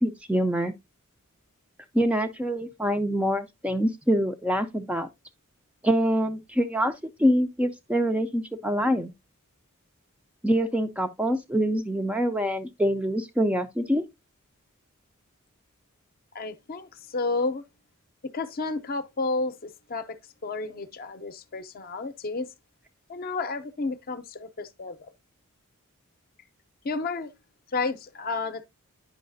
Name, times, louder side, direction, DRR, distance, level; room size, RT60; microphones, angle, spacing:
voice 1, 0.0-0.7 1.9-5.1 5.8-6.9 7.2-9.1 10.4-14.0, equal, 5° right, 0.4 m, -25 dB
voice 2, 16.3-17.6 18.3-20.2 20.4-22.5 23.1-25.1 26.8-27.3 27.7-28.6, left 3 dB, 40° left, 0.6 m, -31 dB
9.3 x 5.6 x 2.6 m
head